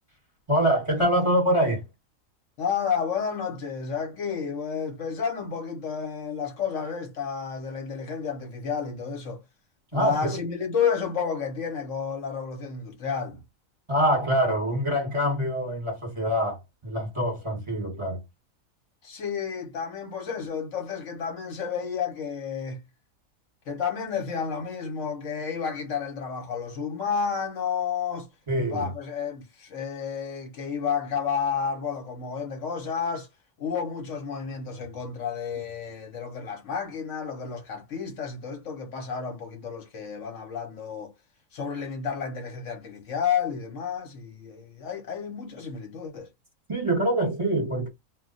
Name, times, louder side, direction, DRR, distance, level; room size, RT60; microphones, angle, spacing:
voice 1, 0.5-1.8 9.9-10.4 13.9-18.2 28.5-28.9 46.7-47.9, right 1 dB, 25° right, 1.2 m, -25 dB
voice 2, 2.6-9.4 9.9-13.4 19.0-22.8 23.7-28.3 28.7-33.3 33.6-41.1 41.5-46.3, left 6 dB, 70° left, 1.2 m, -31 dB
2.4 x 2.2 x 3.8 m
omnidirectional pair, 1.4 m